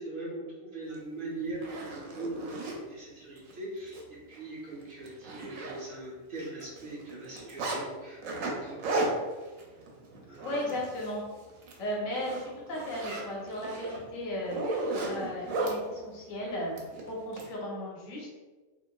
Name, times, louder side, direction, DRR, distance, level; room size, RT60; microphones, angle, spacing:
voice 1, 0.0-4.0 4.3-9.1 10.3-10.6, right 2 dB, 55° right, -6 dB, 0.7 m, -40 dB
Zipper (clothing), 0.9-1.0 1.5-2.8 3.4-3.5 3.9-4.0 4.4-4.5 4.8-6.1 6.4-7.8 8.2-11.2 11.5-11.8 12.1-15.8 16.8-17.5, right 2 dB, 90° right, 1.0 m, -35 dB
voice 2, 10.4-11.2 11.8-14.6 15.1-16.8 17.1-18.3, left 1 dB, 90° left, -2 dB, 1.2 m, -35 dB
2.9 x 2.5 x 2.2 m, 1.3 s
omnidirectional pair, 1.3 m